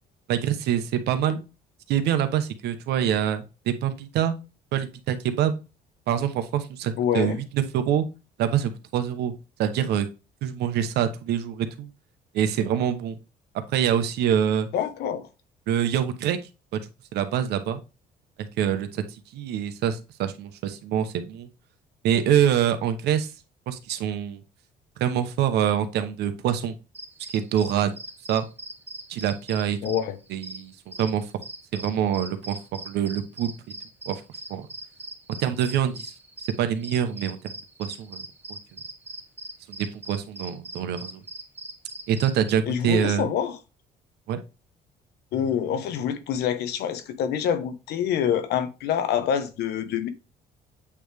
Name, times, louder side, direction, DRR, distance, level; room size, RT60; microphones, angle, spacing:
voice 1, 0.3-1.4 1.9-4.3 4.7-5.6 6.1-8.0 8.4-9.3 9.6-10.1 10.4-11.9 12.3-13.2 13.7-14.7 15.7-16.4 16.7-16.8 17.1-17.8 18.4-19.0 19.3-21.5 22.0-23.3 23.7-24.4 25.0-26.7 27.3-27.9 28.3-28.5 29.1-29.9 30.3-31.3 31.7-32.6 32.8-33.5 34.1-34.2 34.5-34.7 35.4-36.1 36.6-37.4 37.8-38.6 39.7-41.2 42.1-43.3 44.3-44.4, right 9 dB, 75° right, 0.9 m, -25 dB
voice 2, 7.0-7.4 14.7-15.3 29.8-30.2 42.7-43.6 45.3-50.1, left 9 dB, 75° left, 1.0 m, -26 dB
sound 1, 26.9-42.5, right 2 dB, 10° right, 1.0 m, -41 dB
8.5 x 3.2 x 3.4 m
cardioid pair, 110°, 17 cm